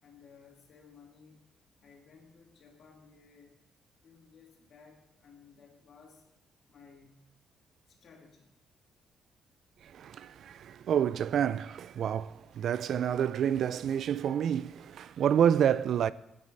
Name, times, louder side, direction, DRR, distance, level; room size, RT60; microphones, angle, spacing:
voice 1, 0.0-1.4 1.8-3.6 4.0-6.2 6.7-7.3 7.9-8.5, left 5 dB, 60° left, 2.7 m, -57 dB
voice 2, 9.8-16.1, right 9 dB, 65° right, 0.4 m, -28 dB
17.0 x 7.5 x 4.1 m
cardioid pair, 90°, 0 cm